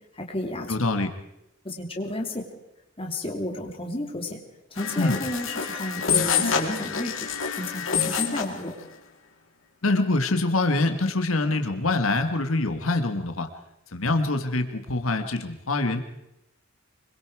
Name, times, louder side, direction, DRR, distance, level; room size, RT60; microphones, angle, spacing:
voice 1, 0.1-0.8 1.6-2.5 3.0-4.4 4.7-7.1 7.5-8.7, left 1 dB, 25° left, 2 dB, 2.9 m, -32 dB
voice 2, 0.7-1.1 5.0-5.2 9.8-13.5 13.9-16.0, left 2 dB, 90° left, 7 dB, 1.7 m, -24 dB
sound 1, 4.8-8.6, left 7 dB, 70° left, 2.4 m, -27 dB
25.5 x 22.5 x 4.8 m, 0.85 s
head